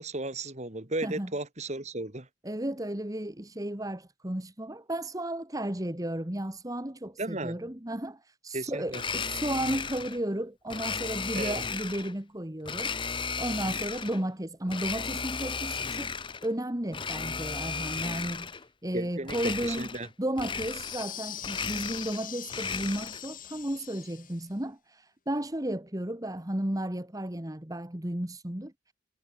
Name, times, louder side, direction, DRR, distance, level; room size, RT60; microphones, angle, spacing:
voice 1, 0.0-2.3 7.2-7.6 8.5-9.0 11.3-11.6 18.9-20.1, right 2 dB, 40° right, 2.8 m, -34 dB
voice 2, 2.4-16.1 16.4-19.9 20.2-28.9, right 1 dB, 20° right, 1.6 m, -34 dB
Domestic sounds home sounds, 8.9-10.2 10.7-12.1 12.6-14.2 14.7-16.5 16.9-18.7 19.2-20.1 20.4-21.1 21.4-23.3, left 5 dB, 25° left, 0.9 m, -35 dB
sound 1, 20.4-24.5, left 11 dB, 45° left, 4.4 m, -42 dB
head